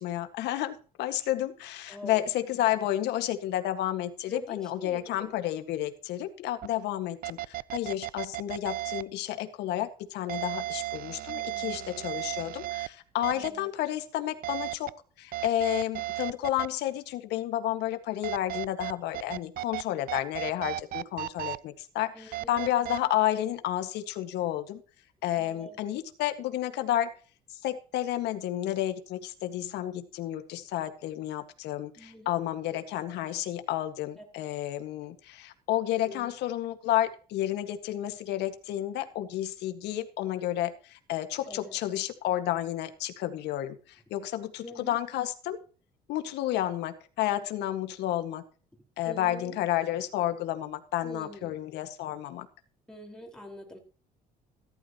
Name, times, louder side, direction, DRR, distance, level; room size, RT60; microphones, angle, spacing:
voice 1, 0.0-14.9 15.2-24.8 25.2-27.1 27.5-45.6 46.1-48.4 49.0-52.5, left 13 dB, 85° left, 8 dB, 1.8 m, -31 dB
voice 2, 1.9-2.3 4.3-5.4 11.1-12.2 13.3-13.7 22.1-22.6 25.3-25.8 32.0-32.3 36.0-36.3 41.5-41.8 44.6-45.0 49.0-49.6 51.0-51.6 52.9-53.8, equal, 5° left, 0 dB, 4.7 m, -45 dB
sound 1, 6.6-6.7 7.2-9.0 10.3-12.9 13.2-13.5 14.4-14.9 15.3-16.7 18.2-19.8 20.1-21.6 22.3-23.0, right 15 dB, 60° right, 0.6 m, -34 dB
15.0 x 12.5 x 3.0 m, 0.38 s
cardioid pair, 110°, 17 cm